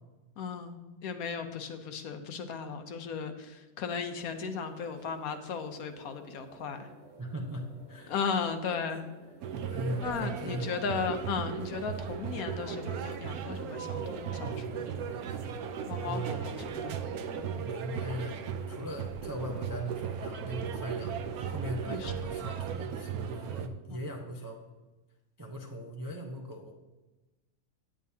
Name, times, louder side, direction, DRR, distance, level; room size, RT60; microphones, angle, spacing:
voice 1, 0.4-6.9 8.1-9.0 10.0-15.1 15.9-17.0 17.3-17.5 21.9-22.1 23.9-24.1, left 6 dB, 70° left, 7 dB, 1.2 m, -36 dB
sound 1, 4.2-21.6, right 2 dB, 55° right, 1.6 m, -55 dB
voice 2, 7.2-8.1 8.7-9.0 9.6-10.8 16.1-16.9 17.6-24.6 25.4-26.7, right 1 dB, 25° right, 1 dB, 0.4 m, -39 dB
sound 2, 9.4-23.7, right 7 dB, 75° right, 1.1 m, -36 dB
9.0 x 8.8 x 2.8 m, 1.1 s
omnidirectional pair, 1.6 m